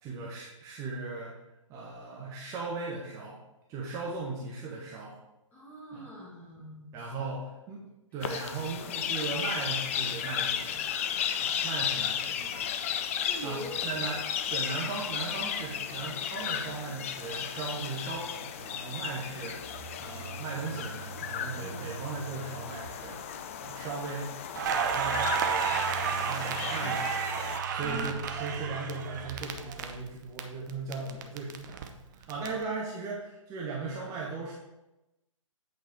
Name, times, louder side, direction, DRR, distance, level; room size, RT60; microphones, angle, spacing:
voice 1, 0.0-1.3 1.7-3.4 3.7-5.1 5.9-6.1 6.9-7.8 8.1-10.9 11.4-12.7 13.4-13.6 13.8-27.1 27.7-34.5, right 3 dB, 20° right, -4 dB, 1.1 m, -38 dB
voice 2, 5.5-7.3 13.3-13.8 19.3-19.5 21.6-21.9 27.8-28.2 32.4-32.7, right 1 dB, 10° left, -3 dB, 1.7 m, -43 dB
sound 1, 8.2-27.6, left 9 dB, 25° left, 0.4 m, -35 dB
Telephone, 19.4-23.4 24.6-30.3, right 5 dB, 80° right, 1.7 m, -44 dB
Crackle, 24.6-30.4 30.7-32.5, right 7 dB, 35° right, 0.7 m, -32 dB
8.3 x 4.6 x 4.5 m, 0.97 s
figure-of-eight pair, 130°, 17 cm